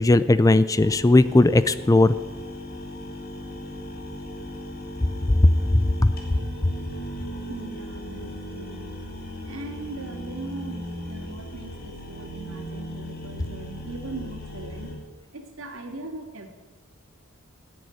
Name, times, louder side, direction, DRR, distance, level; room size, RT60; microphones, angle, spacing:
voice 1, 0.0-2.1 6.0-6.1, left 2 dB, 15° left, 14 dB, 0.4 m, -17 dB
sound 1, 0.7-15.0, equal, 45° left, 2.7 m, -37 dB
voice 2, 7.5-8.8 9.4-14.9 15.3-16.5, right 2 dB, 70° right, 4 dB, 2.3 m, -39 dB
15.0 x 7.8 x 10.0 m, 1.3 s
head